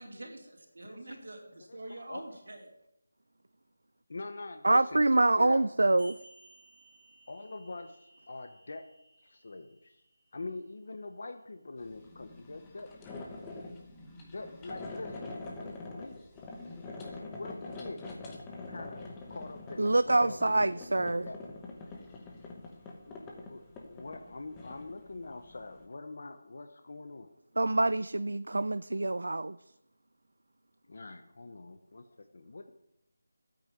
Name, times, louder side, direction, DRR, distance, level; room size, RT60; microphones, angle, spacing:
voice 1, 0.0-2.7, right 2 dB, 55° right, 2 dB, 4.0 m, -45 dB
voice 2, 0.8-1.2 1.7-2.2 4.1-5.7 6.1-6.2 7.3-8.0 8.3-8.8 9.2-10.0 10.3-13.4 14.3-16.2 17.1-18.0 18.7-21.4 23.1-23.2 23.5-27.3 30.9-32.7, left 3 dB, 40° left, 7 dB, 1.0 m, -44 dB
voice 3, 4.6-6.1 19.8-21.3 27.6-29.5, right 2 dB, 85° right, 14 dB, 0.5 m, -26 dB
sound 1, 6.0-11.0, right 1 dB, 35° right, 7.3 m, -59 dB
sound 2, 11.8-25.9, left 2 dB, 5° left, 1.0 m, -45 dB
13.0 x 9.0 x 9.2 m, 0.83 s
figure-of-eight pair, 180°, 0 cm